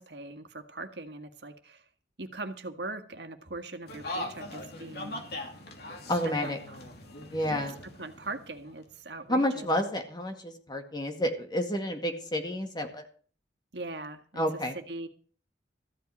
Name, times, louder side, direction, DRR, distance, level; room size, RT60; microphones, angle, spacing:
voice 1, 0.0-1.8 2.2-5.2 6.2-6.8 7.3-9.7 13.7-14.4 14.7-15.1, right 2 dB, 70° right, 1.7 m, -41 dB
sound 1, 3.9-8.9, left 1 dB, 60° left, 2.7 m, -40 dB
voice 2, 6.1-6.6 7.3-7.8 9.3-13.0 14.4-14.7, equal, 25° left, 2.1 m, -30 dB
14.5 x 5.4 x 9.5 m
head